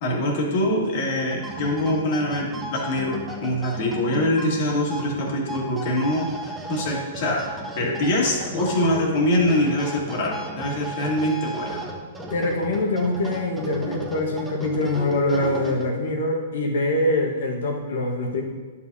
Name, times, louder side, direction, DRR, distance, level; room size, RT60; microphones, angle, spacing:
voice 1, 0.0-7.5 7.8-11.8, left 1 dB, 55° left, -1 dB, 2.0 m, -24 dB
sound 1, 1.2-16.2, right 1 dB, 10° right, 1.1 m, -35 dB
voice 2, 12.3-18.4, left 2 dB, 70° left, 1 dB, 1.4 m, -24 dB
11.0 x 5.7 x 2.7 m, 1.4 s
hypercardioid pair, 120°, 0 cm